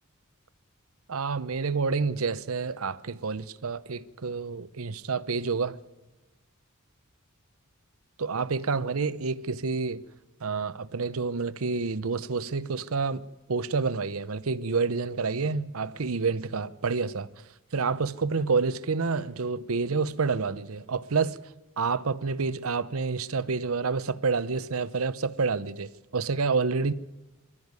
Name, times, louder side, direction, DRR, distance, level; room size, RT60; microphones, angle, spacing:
voice 1, 1.1-5.8 8.2-10.0 10.4-17.3 17.7-21.4 21.8-26.9, right 4 dB, 80° right, 0.8 m, -28 dB
22.0 x 12.5 x 9.6 m
head